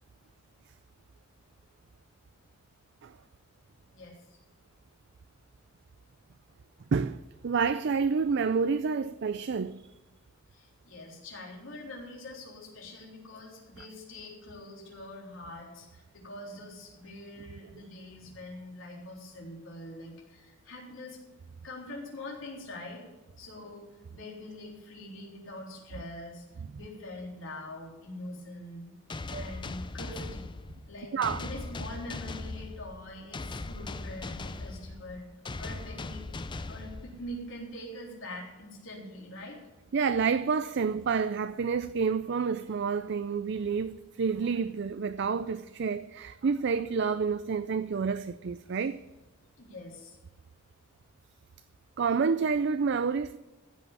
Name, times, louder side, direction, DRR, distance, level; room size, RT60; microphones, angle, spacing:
voice 1, 7.4-9.8 29.3-29.4 31.1-31.4 39.9-49.0 52.0-53.4, right 5 dB, 55° right, 0.4 m, -29 dB
voice 2, 10.5-21.2 21.6-23.0 23.4-23.9 24.1-26.4 26.7-28.9 29.4-30.5 30.9-35.3 35.6-36.3 36.7-39.6 48.7-48.8 49.6-50.2, left 1 dB, 65° left, 3.7 m, -44 dB
sound 1, 29.1-37.6, left 2 dB, 20° left, 0.5 m, -39 dB
15.5 x 5.7 x 8.7 m
head